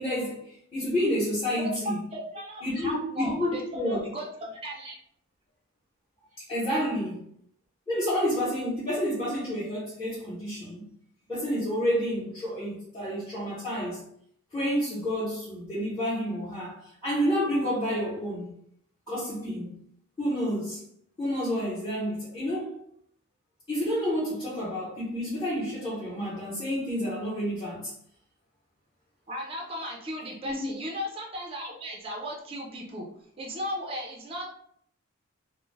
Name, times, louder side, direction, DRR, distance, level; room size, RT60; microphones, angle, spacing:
voice 1, 0.0-2.0 2.6-4.0 6.5-7.2 7.9-10.9 11.3-14.0 14.5-18.5 19.1-19.7 20.2-20.8 21.2-22.8 23.7-27.9 30.4-30.7, equal, 20° left, -12 dB, 0.8 m, -29 dB
voice 2, 1.5-5.0 29.3-33.1 33.4-34.4, equal, 25° right, -1 dB, 0.4 m, -36 dB
2.2 x 2.1 x 3.1 m, 0.68 s
head